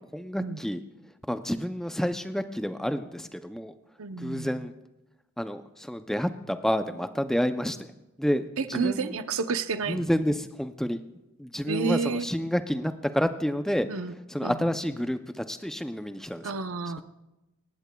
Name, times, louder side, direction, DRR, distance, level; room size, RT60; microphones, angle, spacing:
voice 1, 0.1-0.8 1.3-3.7 4.2-4.7 5.4-7.9 8.2-9.1 9.9-11.0 11.4-13.9 14.3-16.5, equal, ahead, 9 dB, 0.4 m, -29 dB
voice 2, 4.0-4.7 8.6-10.2 11.7-12.3 13.9-14.1 14.4-14.7 16.4-17.0, right 4 dB, 70° right, 10 dB, 0.7 m, -30 dB
26.0 x 13.0 x 2.3 m, 0.99 s
head